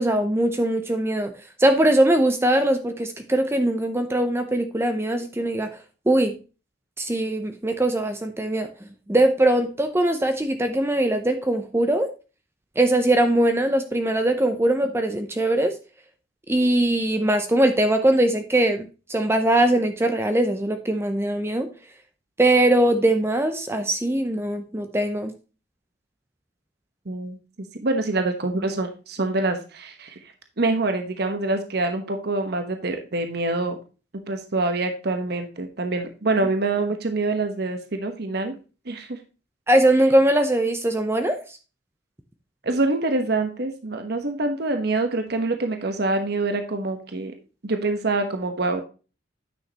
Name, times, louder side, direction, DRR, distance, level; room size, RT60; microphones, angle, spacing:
voice 1, 0.0-1.3 1.6-5.7 6.1-6.3 7.0-8.7 9.1-12.1 12.8-15.7 16.5-21.7 22.4-25.3 39.7-41.4, right 1 dB, 15° right, 7 dB, 0.7 m, -21 dB
voice 2, 27.1-27.4 27.7-30.2 30.6-33.8 34.3-38.5 38.9-39.2 42.6-47.3 47.6-48.8, right 2 dB, 60° right, 6 dB, 1.1 m, -25 dB
9.7 x 6.4 x 2.9 m, 0.33 s
head